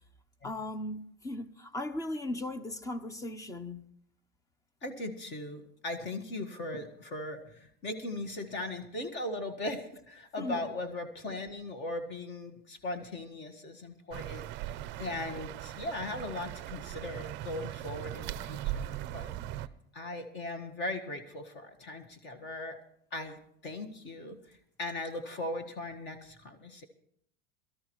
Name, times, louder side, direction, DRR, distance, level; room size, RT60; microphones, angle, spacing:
voice 1, 0.4-3.8 10.4-10.6, left 1 dB, 10° left, 0.6 m, -37 dB
voice 2, 4.8-19.3 19.6-19.7 19.9-22.8 23.1-26.9, left 2 dB, 35° left, 1.6 m, -39 dB
sound 1, 14.1-19.7, right 13 dB, 40° right, 0.5 m, -39 dB
22.5 x 13.0 x 3.1 m
supercardioid pair, 145°, 30 cm